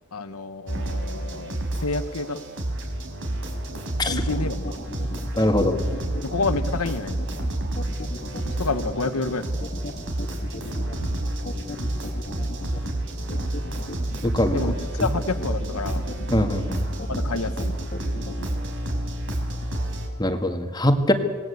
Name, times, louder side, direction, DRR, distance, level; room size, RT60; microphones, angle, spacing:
voice 1, 0.1-2.4 4.0-4.8 6.2-7.2 8.6-9.6 14.5-16.0 17.1-17.7, left 3 dB, 80° left, 11 dB, 1.3 m, -29 dB
sound 1, 0.7-20.1, right 1 dB, 60° right, 4.6 m, -29 dB
sound 2, 3.7-18.5, left 1 dB, 40° left, 2.4 m, -36 dB
voice 2, 5.4-5.8 14.2-14.6 16.3-16.8 20.2-21.1, left 1 dB, 20° left, 6 dB, 2.0 m, -22 dB
27.0 x 19.5 x 8.2 m, 1.5 s
head